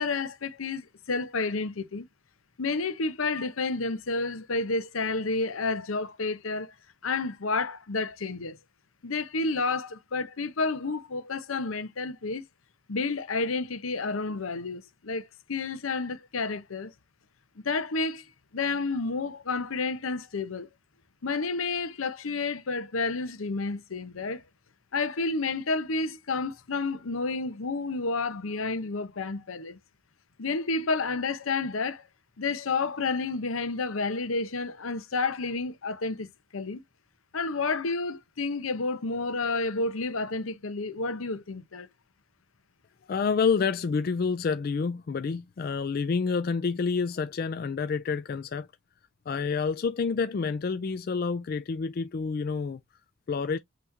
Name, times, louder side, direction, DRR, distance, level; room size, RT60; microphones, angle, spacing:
voice 1, 0.0-2.0 2.6-6.7 7.0-8.6 9.0-12.4 12.9-16.9 17.6-18.2 18.5-20.7 21.2-24.4 24.9-29.8 30.4-32.0 32.4-36.8 37.3-41.9, left 3 dB, 85° left, 0.8 m, -30 dB
voice 2, 43.1-48.7 49.3-52.8 53.3-53.6, left 5 dB, 45° left, 0.3 m, -28 dB
5.7 x 3.0 x 2.7 m
head